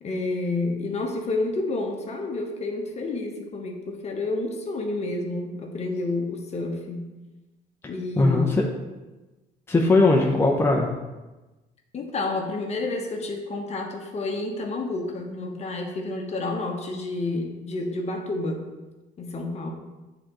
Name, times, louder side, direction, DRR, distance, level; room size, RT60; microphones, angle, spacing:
voice 1, 0.0-7.0 7.9-8.5 11.9-18.6 19.2-19.7, left 2 dB, 40° left, 2 dB, 1.0 m, -29 dB
voice 2, 8.1-8.6 9.7-10.9, left 2 dB, 15° left, -1 dB, 0.7 m, -19 dB
9.0 x 3.8 x 3.0 m, 1.1 s
cardioid pair, 110°, 17 cm